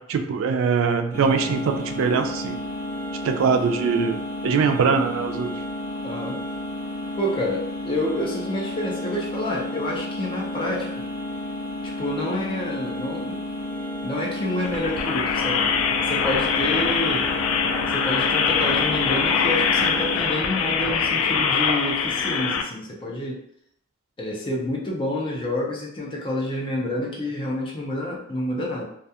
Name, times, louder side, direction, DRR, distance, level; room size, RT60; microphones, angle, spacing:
voice 1, 0.0-2.6 3.2-5.6, right 5 dB, 70° right, 6 dB, 0.3 m, -22 dB
sound 1, 1.1-20.2, left 1 dB, 50° left, 0.9 m, -32 dB
voice 2, 6.0-6.4 7.2-11.1 11.8-13.4 14.0-15.7 16.1-17.3 17.9-23.4 24.2-28.8, left 1 dB, 25° left, -3 dB, 0.6 m, -28 dB
sound 2, 14.6-22.6, left 6 dB, 85° left, 0.3 m, -23 dB
2.3 x 2.3 x 2.7 m, 0.72 s
head